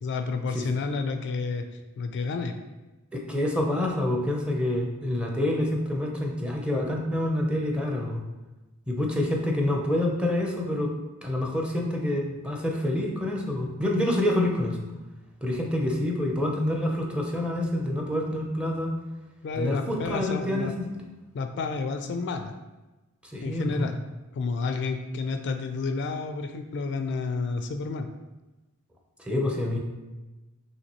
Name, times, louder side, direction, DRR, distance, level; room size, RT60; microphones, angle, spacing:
voice 1, 0.0-1.7 2.0-2.5 19.4-20.7 21.3-22.5 23.4-24.0 24.3-28.1, left 4 dB, 55° left, 7 dB, 0.3 m, -30 dB
voice 2, 3.1-8.2 8.9-10.9 11.2-14.8 15.4-19.0 19.6-21.0 23.2-23.9 29.2-29.8, left 1 dB, 5° right, 0 dB, 0.5 m, -27 dB
5.6 x 3.0 x 3.0 m, 1.1 s
head